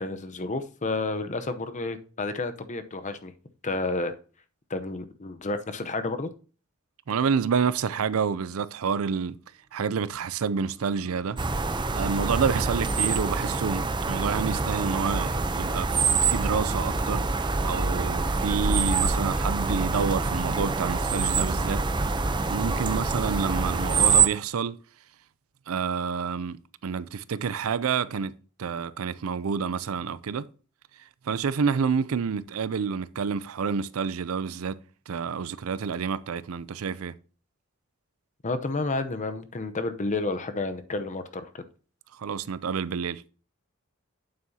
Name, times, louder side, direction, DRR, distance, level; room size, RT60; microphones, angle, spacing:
voice 1, 0.0-3.3 3.6-4.2 4.7-6.3 38.4-41.7, left 3 dB, 35° left, 0.7 m, -30 dB
voice 2, 7.1-9.4 9.7-11.4 11.9-17.3 17.6-21.8 22.5-24.8 25.7-28.3 28.6-30.5 31.3-34.8 35.1-37.1 42.2-43.2, right 6 dB, 75° right, 0.5 m, -28 dB
sound 1, 9.5-19.0, equal, ahead, 3.6 m, -49 dB
sound 2, 11.4-24.3, right 4 dB, 20° right, 0.6 m, -25 dB
8.9 x 7.3 x 2.8 m
head